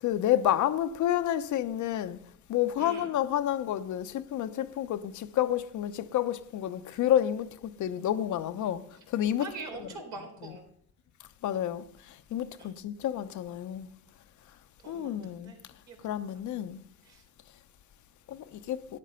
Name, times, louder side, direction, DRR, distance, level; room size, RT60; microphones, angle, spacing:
voice 1, 0.0-2.2 2.5-9.5 9.8-9.9 11.4-11.9 12.3-13.9 14.9-15.5 16.0-16.8 18.3-18.8, left 11 dB, 75° left, 0.9 m, -29 dB
voice 2, 9.4-10.7 12.6-12.8 14.8-15.6 15.9-16.2 17.0-17.2, right 4 dB, 75° right, 4.1 m, -44 dB
13.0 x 9.9 x 5.6 m
cardioid pair, 90°, 30 cm